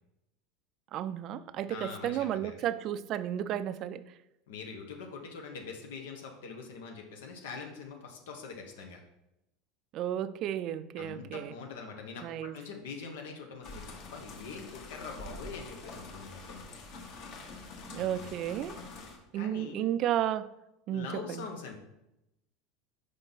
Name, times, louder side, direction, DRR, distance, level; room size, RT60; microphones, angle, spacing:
voice 1, 0.9-4.0 9.9-11.5 12.2-12.5 17.8-18.8 19.3-20.5 20.9-21.5, right 11 dB, 45° right, 14 dB, 0.3 m, -33 dB
voice 2, 1.7-2.6 4.5-9.0 11.0-16.8 17.9-18.4 19.3-19.9 20.9-21.8, left 5 dB, 90° left, 2 dB, 1.0 m, -43 dB
sound 1, 13.6-19.2, left 3 dB, 50° left, 1.2 m, -46 dB
5.3 x 5.0 x 4.0 m, 0.88 s
supercardioid pair, 140°, 0 cm